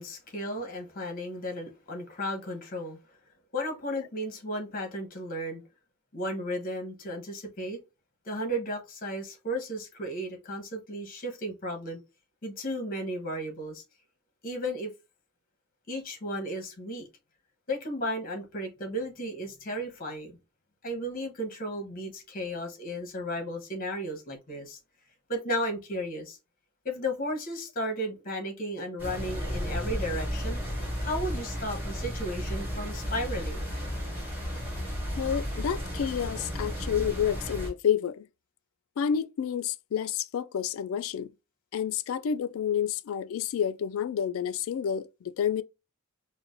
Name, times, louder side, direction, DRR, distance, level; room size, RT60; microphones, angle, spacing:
voice 1, 0.0-3.0 3.5-5.6 6.1-7.8 8.2-12.0 12.4-13.8 14.4-14.9 15.9-17.1 17.7-20.4 20.8-24.8 25.3-26.4 26.8-30.6 31.0-33.7, equal, 40° left, 1.0 m, -34 dB
sound 1, 29.0-37.7, equal, 10° right, 2.1 m, -33 dB
voice 2, 35.2-38.2 39.0-41.3 41.7-45.6, left 8 dB, 70° left, 0.3 m, -29 dB
4.7 x 2.1 x 2.5 m
head